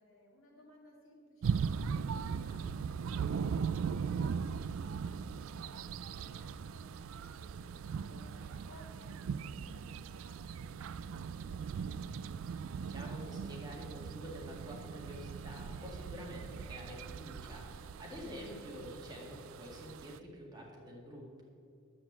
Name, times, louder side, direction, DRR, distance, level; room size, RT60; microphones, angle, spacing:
voice 1, 0.0-12.2, equal, 65° left, -1 dB, 2.3 m, -61 dB
sound 1, 1.4-20.2, right 6 dB, 65° right, 0.3 m, -39 dB
voice 2, 12.8-21.4, equal, 20° right, -3 dB, 1.9 m, -48 dB
9.9 x 7.7 x 7.4 m, 2.5 s
head